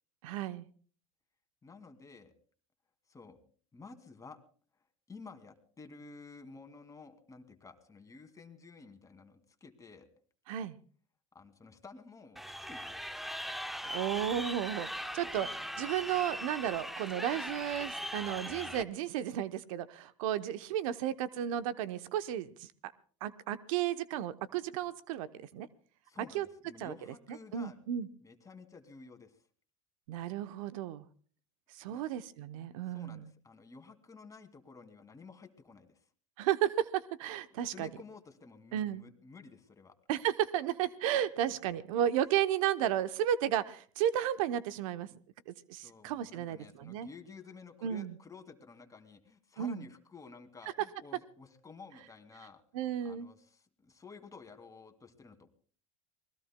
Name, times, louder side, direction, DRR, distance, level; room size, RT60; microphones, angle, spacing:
voice 1, 0.2-0.7 10.5-10.8 13.9-15.5 15.8-22.7 23.2-25.7 26.3-26.5 26.8-26.9 27.3-28.1 30.1-31.0 31.7-33.3 36.4-37.9 38.7-39.0 40.1-45.2 45.5-47.1 47.8-48.1 49.6-49.8 52.7-53.3, right 11 dB, 75° right, 12 dB, 0.8 m, -33 dB
voice 2, 1.6-2.3 3.1-3.4 3.7-4.4 5.1-10.1 11.3-12.4 12.7-13.0 15.3-15.5 26.0-27.8 28.2-29.3 31.9-32.0 32.9-36.0 37.7-39.9 45.8-55.5, left 4 dB, 20° left, 7 dB, 2.3 m, -52 dB
Crowd, 12.4-18.8, equal, ahead, 0.9 m, -40 dB
26.5 x 20.0 x 2.2 m, 0.44 s
hypercardioid pair, 90°, 17 cm